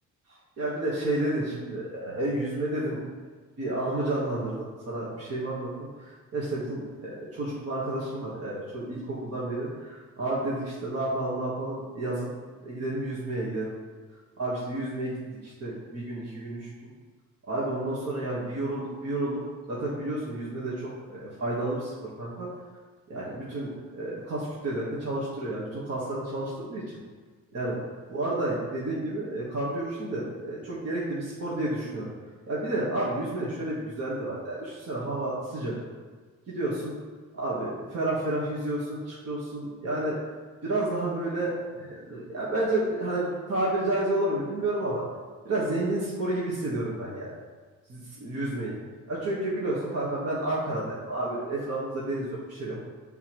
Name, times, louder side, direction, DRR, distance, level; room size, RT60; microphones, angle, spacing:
voice 1, 0.6-3.0 3.6-12.3 12.6-13.7 14.4-16.7 17.5-19.4 19.7-22.5 23.1-26.8 27.5-27.8 28.1-32.1 32.5-35.7 36.5-36.9 37.3-40.2 40.6-45.0 45.4-47.3 47.9-48.8 49.1-52.8, right 1 dB, 55° right, -7 dB, 1.5 m, -30 dB
8.0 x 3.8 x 3.0 m, 1.4 s
cardioid pair, 90°, 30 cm